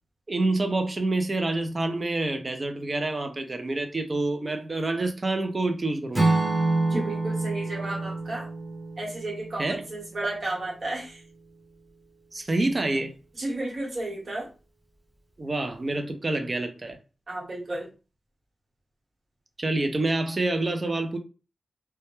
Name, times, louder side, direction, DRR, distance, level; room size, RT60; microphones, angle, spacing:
voice 1, 0.3-6.3 9.6-9.8 12.3-13.1 15.4-17.0 19.6-21.2, right 2 dB, 30° right, 0.4 m, -27 dB
Acoustic guitar / Strum, 6.1-10.2, right 2 dB, 10° right, 0.9 m, -27 dB
voice 2, 6.9-8.5 9.0-11.2 13.4-14.5 17.3-17.9, right 2 dB, 50° right, 1.1 m, -32 dB
2.2 x 2.1 x 2.9 m
wide cardioid pair, 125°, 0 cm